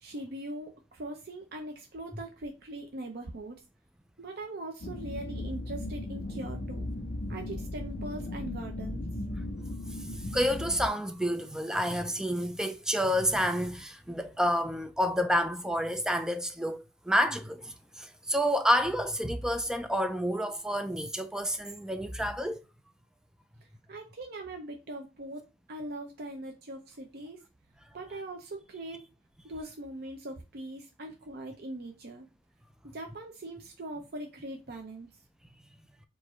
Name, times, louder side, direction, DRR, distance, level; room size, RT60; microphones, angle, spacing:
voice 1, 0.0-3.6 4.2-6.9 7.3-9.1 23.9-27.4 27.9-29.0 29.4-32.3 32.8-35.1, right 1 dB, 55° right, 0.6 m, -41 dB
sound 1, 4.8-10.9, left 1 dB, 75° left, 1.5 m, -37 dB
voice 2, 10.0-22.6, equal, 5° right, 0.4 m, -29 dB
4.6 x 2.6 x 4.3 m
head